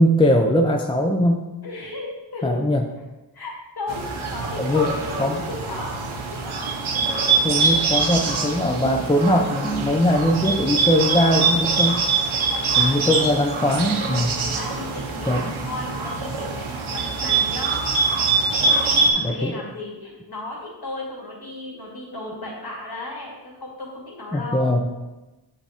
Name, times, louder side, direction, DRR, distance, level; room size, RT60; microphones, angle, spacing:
voice 1, 0.0-1.4 2.4-2.8 4.6-4.9 5.2-5.4 7.4-12.0 12.8-14.4 15.3-15.6 19.2-19.5 24.3-24.8, left 1 dB, 10° left, 3 dB, 0.4 m, -20 dB
voice 2, 1.6-2.6 3.3-6.6 12.3-13.7 14.3-18.0 18.6-24.8, left 2 dB, 50° left, -4 dB, 2.4 m, -35 dB
Bird, 3.9-19.1, right 4 dB, 80° right, 0.9 m, -24 dB
8.7 x 3.5 x 4.3 m, 1.1 s
wide cardioid pair, 90°, 47 cm